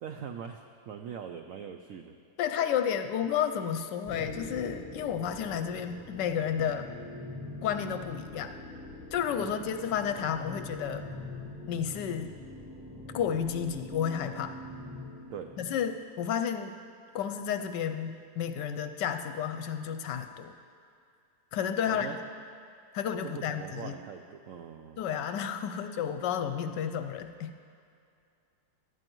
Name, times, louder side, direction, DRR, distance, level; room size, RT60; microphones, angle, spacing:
voice 1, 0.0-2.2 2.6-2.7 9.4-9.6 15.3-15.5 21.9-22.2 23.2-25.1, right 7 dB, 90° right, 5 dB, 0.7 m, -42 dB
voice 2, 2.4-6.9 7.6-8.5 9.1-11.1 11.7-12.4 13.1-14.6 15.6-16.8 17.1-20.5 21.5-22.1 22.9-23.9 25.0-27.5, left 8 dB, 75° left, 9 dB, 1.1 m, -31 dB
sound 1, 4.0-16.0, left 1 dB, 15° right, 1.5 m, -43 dB
18.0 x 11.5 x 3.0 m, 2.4 s
omnidirectional pair, 2.0 m